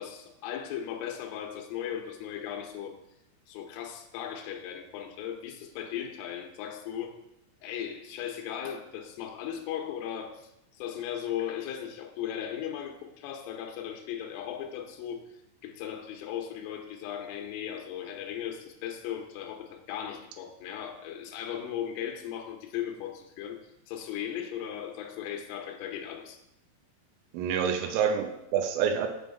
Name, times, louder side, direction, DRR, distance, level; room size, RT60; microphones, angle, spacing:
voice 1, 0.0-3.0 3.5-7.1 7.6-10.5 10.8-15.2 15.6-23.6 23.9-26.4 27.8-28.0, left 9 dB, 90° left, 2 dB, 3.4 m, -37 dB
voice 2, 27.3-29.1, right 7 dB, 85° right, 5 dB, 3.4 m, -27 dB
7.9 x 5.5 x 5.2 m, 0.84 s
omnidirectional pair, 5.7 m